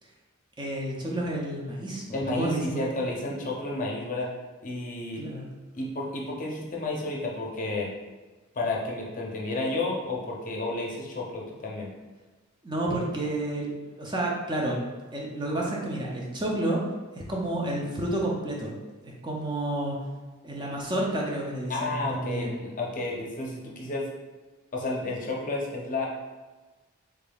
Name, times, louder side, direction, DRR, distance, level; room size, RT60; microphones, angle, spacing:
voice 1, 0.6-2.0 2.3-2.8 3.3-3.4 5.2-5.4 12.6-14.8 15.1-16.8 17.1-18.7 19.0-20.0 20.4-22.6, right 1 dB, 20° right, -2 dB, 0.5 m, -30 dB
voice 2, 2.1-4.3 4.6-5.3 5.7-7.9 8.5-11.9 21.7-24.1 24.7-26.1, left 2 dB, 40° left, -2 dB, 0.6 m, -31 dB
3.5 x 3.4 x 2.3 m, 1.3 s
head